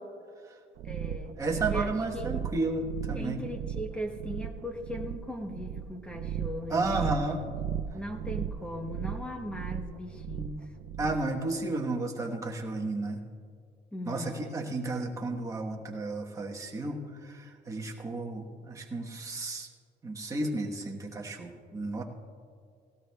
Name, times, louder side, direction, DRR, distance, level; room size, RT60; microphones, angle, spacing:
voice 1, 0.8-1.4 1.7-2.4 3.1-7.2 7.9-10.7 13.9-14.5, equal, 5° left, 4 dB, 0.9 m, -38 dB
sound 1, 0.8-11.3, right 8 dB, 85° right, 0.7 m, -36 dB
voice 2, 1.4-3.4 6.7-7.4 11.0-13.2 14.1-19.7 20.0-22.0, right 2 dB, 15° right, 0 dB, 1.2 m, -32 dB
18.5 x 16.5 x 2.3 m, 2.2 s
cardioid pair, 175°, 19 cm